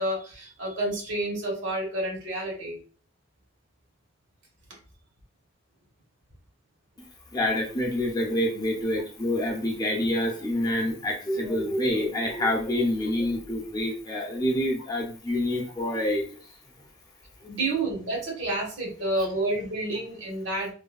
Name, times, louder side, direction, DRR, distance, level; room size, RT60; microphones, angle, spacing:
voice 1, 0.0-2.8 17.5-20.7, right 2 dB, 80° right, -2 dB, 1.2 m, -29 dB
voice 2, 7.3-16.3, left 1 dB, 20° left, -1 dB, 0.6 m, -27 dB
3.1 x 2.2 x 2.3 m, 0.40 s
head